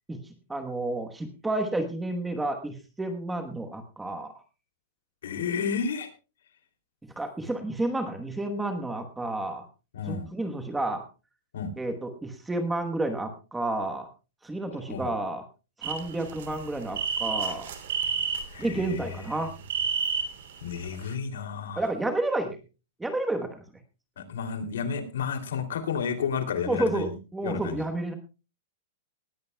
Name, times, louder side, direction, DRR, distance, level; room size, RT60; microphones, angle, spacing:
voice 1, 0.1-4.3 7.2-9.6 10.1-11.0 11.8-14.1 14.4-15.4 15.8-17.7 18.6-19.5 21.8-22.6 23.0-23.6 26.7-28.1, right 2 dB, 5° right, 6 dB, 1.1 m, -30 dB
voice 2, 5.2-6.1 9.9-10.3 11.5-11.7 14.9-15.1 18.5-19.0 20.6-21.8 24.2-27.1 27.4-27.8, left 6 dB, 85° left, 7 dB, 2.7 m, -31 dB
sound 1, 15.8-19.0 19.4-20.6 20.9-21.0, right 6 dB, 55° right, 2.7 m, -30 dB
19.0 x 14.5 x 2.2 m, 0.31 s
supercardioid pair, 180°, 0 cm